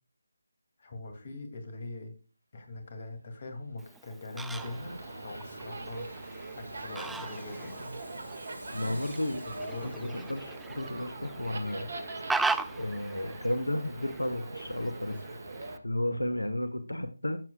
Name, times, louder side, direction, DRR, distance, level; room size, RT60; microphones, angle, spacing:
voice 1, 0.8-2.2 2.5-7.9 8.8-9.2 9.4-10.1 16.0-16.2, left 2 dB, 35° left, 5 dB, 2.4 m, -42 dB
sound 1, 3.4-13.1 13.5-13.6, equal, 65° right, 3.9 m, -52 dB
Fowl, 3.8-15.8, right 3 dB, 5° right, 0.3 m, -39 dB
sound 2, 4.5-15.8, right 2 dB, 45° right, 1.8 m, -42 dB
voice 2, 8.7-9.4 9.8-11.9 12.8-15.2 15.8-17.4, left 1 dB, 75° left, 9 dB, 1.3 m, -33 dB
14.0 x 7.5 x 2.3 m, 0.34 s
figure-of-eight pair, 155°, 0 cm